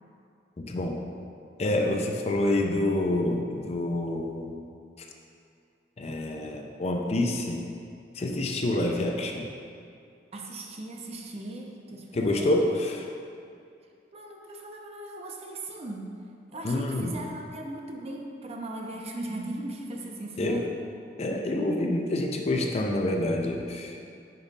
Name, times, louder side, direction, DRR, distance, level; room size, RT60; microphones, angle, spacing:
voice 1, 0.6-1.0 1.6-4.6 6.0-7.6 8.1-9.5 12.1-13.1 16.6-17.2 20.4-20.6 21.2-24.0, left 1 dB, 35° left, 2 dB, 0.5 m, -27 dB
voice 2, 10.3-12.8 14.1-16.1 16.5-20.7, right 2 dB, 35° right, 1 dB, 0.6 m, -38 dB
5.3 x 4.9 x 4.1 m, 2.4 s
head